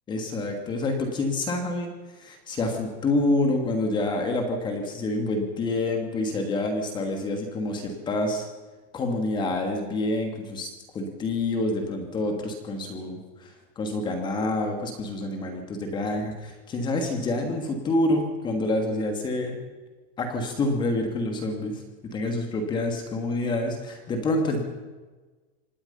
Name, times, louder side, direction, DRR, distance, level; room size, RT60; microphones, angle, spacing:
voice 1, 0.1-1.9 2.2-8.5 8.9-10.7 10.9-19.6 20.2-21.8 22.1-24.6, left 2 dB, 15° left, 4 dB, 2.5 m, -27 dB
26.5 x 19.0 x 5.7 m, 1.2 s
supercardioid pair, 175°, 32 cm